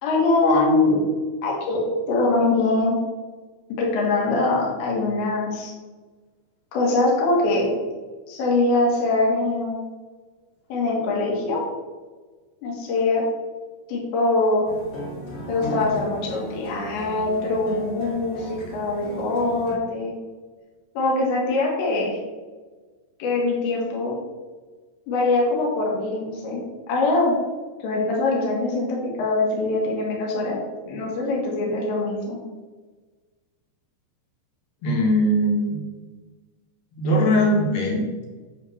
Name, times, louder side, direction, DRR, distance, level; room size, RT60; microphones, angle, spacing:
voice 1, 0.0-1.0 1.4-3.0 3.8-5.7 6.7-7.7 8.3-9.8 10.7-11.7 12.6-13.3 13.9-14.7 15.5-20.1 21.0-22.2 23.2-24.2 25.1-26.6 26.9-27.4 27.8-30.6 30.9-32.4, left 2 dB, 75° left, -2 dB, 4.1 m, -23 dB
sound 1, 14.6-19.7, equal, 45° left, 1.3 m, -35 dB
voice 2, 34.8-35.8 37.0-38.3, equal, 60° left, -1 dB, 3.1 m, -20 dB
10.5 x 3.6 x 6.8 m, 1.3 s
omnidirectional pair, 5.3 m